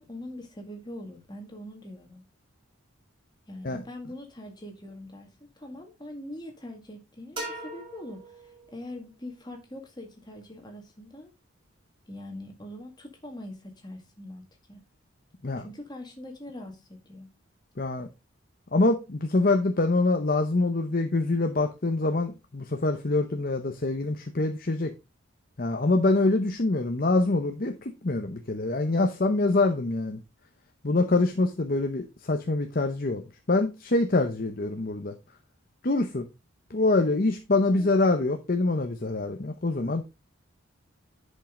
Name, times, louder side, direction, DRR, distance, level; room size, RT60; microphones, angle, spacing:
voice 1, 0.0-2.2 3.5-5.3 5.6-11.3 12.1-14.8 15.6-17.3 37.6-38.0, left 1 dB, 20° left, 2.0 m, -43 dB
sound 1, 7.4-9.1, right 1 dB, 25° right, 2.2 m, -40 dB
voice 2, 17.8-18.1 18.7-24.9 25.6-30.2 30.8-33.2 33.5-35.1 35.8-36.3 36.7-40.0, left 2 dB, 45° left, 0.8 m, -25 dB
10.5 x 5.5 x 3.7 m
head